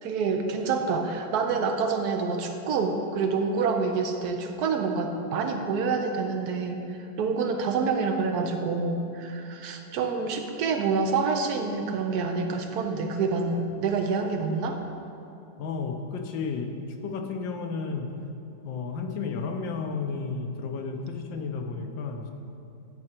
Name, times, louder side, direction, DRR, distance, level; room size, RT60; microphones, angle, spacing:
voice 1, 0.0-14.8, right 4 dB, 70° right, 4 dB, 1.0 m, -27 dB
voice 2, 15.6-16.7 17.0-18.1 18.6-22.3, left 4 dB, 85° left, 4 dB, 1.5 m, -32 dB
10.5 x 4.8 x 4.4 m, 2.7 s
omnidirectional pair, 2.0 m